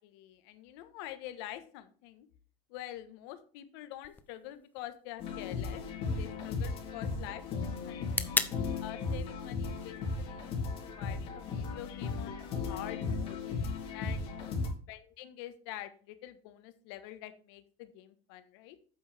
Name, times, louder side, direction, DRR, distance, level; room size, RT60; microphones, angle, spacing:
voice 1, 0.0-2.3 2.7-5.8 6.2-7.4 7.9-8.2 8.8-12.3 12.6-13.4 13.9-14.3 14.9-18.8, left 13 dB, 75° left, 10 dB, 1.3 m, -46 dB
sound 1, 4.0-12.0, left 4 dB, 15° left, 0.7 m, -41 dB
sound 2, 5.2-14.7, left 4 dB, 45° left, 3.6 m, -36 dB
8.5 x 7.1 x 3.5 m, 0.43 s
supercardioid pair, 135°, 13 cm